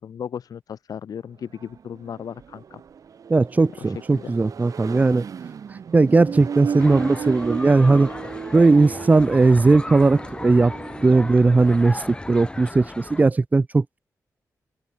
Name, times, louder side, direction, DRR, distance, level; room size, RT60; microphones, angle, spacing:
voice 1, 0.0-2.8 3.8-4.3, left 8 dB, 80° left, 1.6 m, -36 dB
Accelerating revving vroom, 1.4-11.9, right 7 dB, 65° right, 0.9 m, -35 dB
voice 2, 3.3-5.2 5.9-8.1 8.5-10.7 11.0-14.0, right 3 dB, 25° right, 0.8 m, -18 dB
sound 1, 6.8-13.2, left 2 dB, 15° left, 1.6 m, -35 dB
open air
wide cardioid pair, 120°, 6 cm